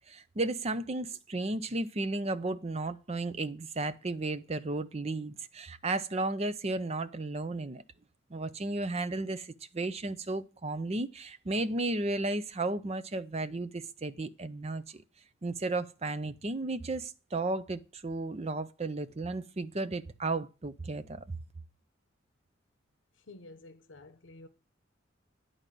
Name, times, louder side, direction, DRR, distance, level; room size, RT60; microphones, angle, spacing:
voice 1, 0.1-7.8 8.3-15.0 15.4-21.4, right 2 dB, 30° right, 0.6 m, -34 dB
voice 2, 23.2-24.5, left 2 dB, 70° left, 0.9 m, -51 dB
10.5 x 4.0 x 7.6 m
head